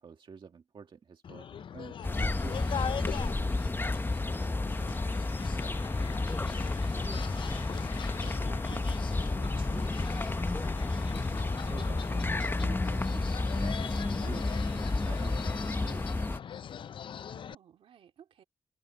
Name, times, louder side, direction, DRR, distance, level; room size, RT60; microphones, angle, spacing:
voice 1, 0.0-3.2 11.6-16.3, right 6 dB, 60° right, 1.9 m, -49 dB
sound 1, 1.2-17.5, left 8 dB, 60° left, 0.4 m, -41 dB
sound 2, 2.0-16.4, left 2 dB, 20° left, 0.9 m, -31 dB
voice 2, 4.3-10.7 17.2-18.4, right 9 dB, 80° right, 2.4 m, -56 dB
cardioid pair, 60°, 9 cm